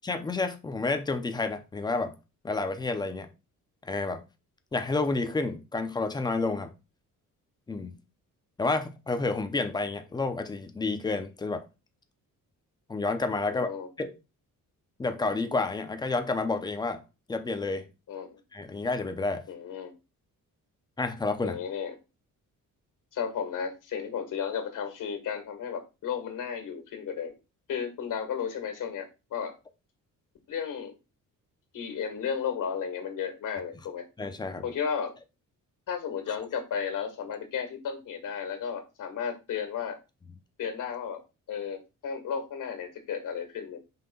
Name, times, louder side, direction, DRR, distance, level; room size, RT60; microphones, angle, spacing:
voice 1, 0.0-2.1 2.4-3.3 3.8-4.2 4.7-6.7 7.7-7.9 8.6-11.6 12.9-14.2 15.0-17.0 17.3-17.9 18.5-19.4 21.0-21.6 34.2-34.6, left 3 dB, 15° left, 0.6 m, -30 dB
voice 2, 13.5-13.9 18.1-18.4 19.5-19.9 21.4-21.9 23.1-27.4 27.7-29.5 30.5-30.9 31.7-34.0 34.6-35.1 35.9-40.0 40.6-41.2 41.5-43.8, left 7 dB, 65° left, 1.8 m, -34 dB
5.7 x 3.3 x 5.3 m
wide cardioid pair, 180°, 33 cm